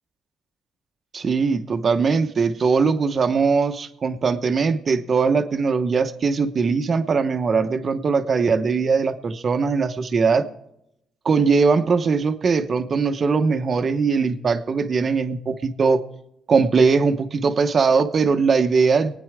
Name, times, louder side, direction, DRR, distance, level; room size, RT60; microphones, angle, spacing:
voice 1, 1.1-10.4 11.2-16.0 16.5-19.2, right 5 dB, 45° right, 9 dB, 1.0 m, -20 dB
23.5 x 9.4 x 3.6 m, 0.81 s
cardioid pair, 90°, 0 cm